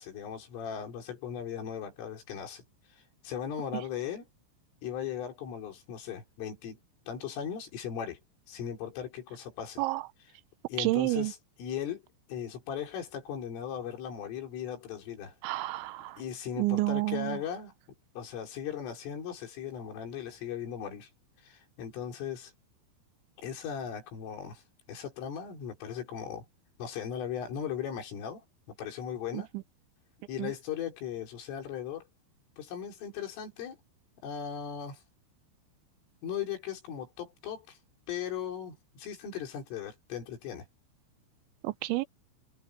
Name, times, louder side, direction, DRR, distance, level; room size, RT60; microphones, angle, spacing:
voice 1, 0.0-2.6 2.9-4.3 4.8-6.8 7.1-8.2 8.5-9.8 10.7-12.0 12.3-15.4 16.2-17.7 18.2-21.1 21.4-22.5 23.4-24.6 24.9-26.5 26.8-28.4 28.8-29.5 30.3-32.1 32.6-33.8 34.2-35.0 36.2-37.8 38.1-40.7, left 8 dB, 80° left, 7.1 m, -38 dB
voice 2, 10.8-11.3 15.4-16.2 16.6-17.4 29.3-29.4 30.4-30.5 41.6-42.1, right 19 dB, 80° right, 3.0 m, -29 dB
omnidirectional pair, 5.7 m